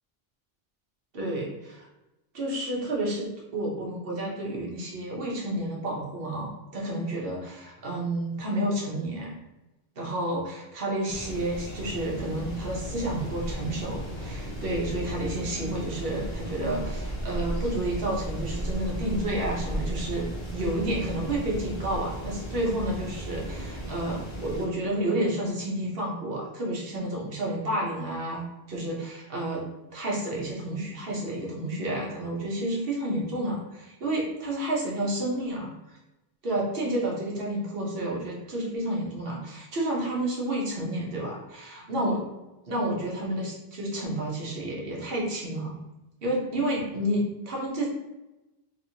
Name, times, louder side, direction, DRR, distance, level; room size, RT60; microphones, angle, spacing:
voice 1, 1.1-1.9 2.3-7.4 7.6-9.4 10.0-29.6 29.9-36.0 36.4-42.2 42.7-45.7 46.2-47.9, right 1 dB, 65° right, -2 dB, 1.1 m, -30 dB
sound 1, 11.1-24.7, equal, 30° left, 0.7 m, -35 dB
3.1 x 3.0 x 2.8 m, 0.99 s
omnidirectional pair, 1.0 m